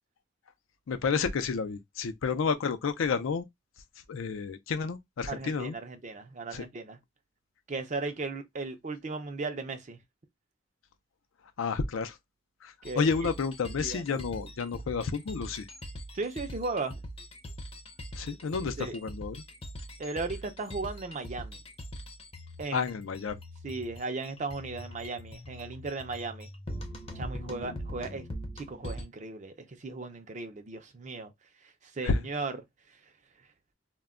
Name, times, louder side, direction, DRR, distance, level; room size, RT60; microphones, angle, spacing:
voice 1, 0.9-3.5 4.1-5.8 6.5-6.6 11.6-12.2 12.6-15.7 18.2-19.4 22.7-23.4 32.0-32.2, left 5 dB, 80° left, 0.4 m, -30 dB
voice 2, 5.3-7.0 7.7-10.0 12.8-13.3 13.8-14.2 16.1-17.0 18.8-18.9 20.0-21.6 22.6-22.9 23.6-26.5 27.1-28.3 28.6-31.3 31.8-32.6, right 3 dB, 35° right, 0.5 m, -36 dB
sound 1, 12.8-29.0, equal, 30° left, 0.6 m, -42 dB
2.2 x 2.1 x 3.5 m
head